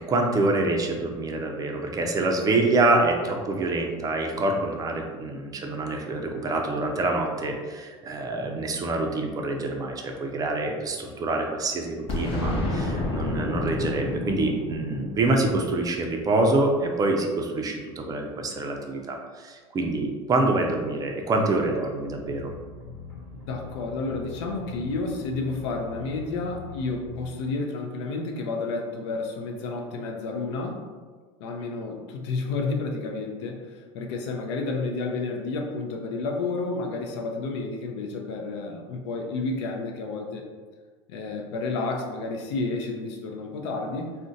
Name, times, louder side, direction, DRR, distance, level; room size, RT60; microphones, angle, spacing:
voice 1, 0.0-22.5, right 2 dB, 25° right, 2 dB, 0.4 m, -26 dB
Boom, 12.1-16.8, left 2 dB, 40° left, 0.7 m, -30 dB
sound 1, 22.0-27.3, left 4 dB, 20° left, 1.1 m, -42 dB
voice 2, 23.5-30.8 31.4-40.4 41.1-44.2, left 3 dB, 75° left, 1 dB, 0.5 m, -31 dB
2.4 x 2.1 x 3.8 m, 1.5 s
supercardioid pair, 115°, 14 cm